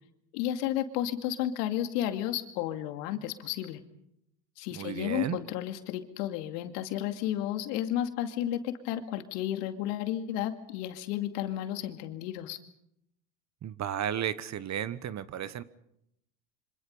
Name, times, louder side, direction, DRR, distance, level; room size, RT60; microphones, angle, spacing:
voice 1, 0.3-3.8 4.6-12.6, left 12 dB, 70° left, 7 dB, 2.4 m, -32 dB
voice 2, 4.7-5.4 13.6-15.6, right 10 dB, 35° right, 16 dB, 1.1 m, -33 dB
27.0 x 25.5 x 5.5 m, 0.77 s
hypercardioid pair, 100°, 50 cm